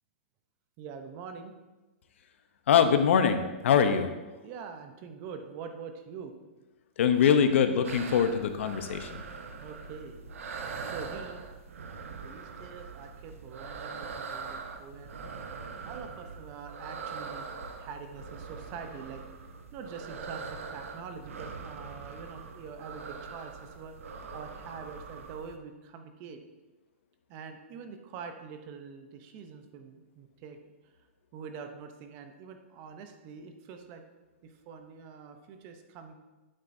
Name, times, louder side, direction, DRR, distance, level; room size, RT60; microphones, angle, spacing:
voice 1, 0.8-1.5 4.4-6.3 9.6-10.2 10.9-11.4 12.0-15.1 15.8-17.5 17.8-19.2 19.7-26.4 27.3-30.6 30.8-30.9 31.3-34.0 34.4-36.1, right 6 dB, 30° right, 6 dB, 0.7 m, -44 dB
voice 2, 2.7-4.1 7.0-9.2, left 7 dB, 65° left, 9 dB, 0.7 m, -23 dB
sound 1, 7.8-25.6, right 5 dB, 90° right, 0.9 m, -42 dB
8.8 x 7.6 x 2.7 m, 1.1 s
hypercardioid pair, 165°, 7 cm